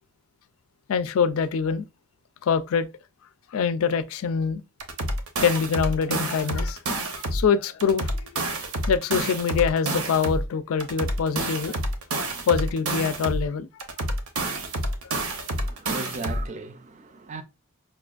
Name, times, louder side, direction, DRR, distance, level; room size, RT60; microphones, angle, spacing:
voice 1, 0.9-1.8 2.4-2.9 3.5-4.6 5.4-6.8 7.1-8.6 8.9-11.8 12.5-13.7 15.0-15.1, left 6 dB, 75° left, 0.4 m, -24 dB
sound 1, 4.8-7.5 7.8-10.5 10.8-13.5 13.8-16.5, right 1 dB, 85° right, 0.8 m, -28 dB
voice 2, 15.5-17.4, right 3 dB, 35° right, 0.4 m, -37 dB
5.6 x 2.3 x 2.4 m
head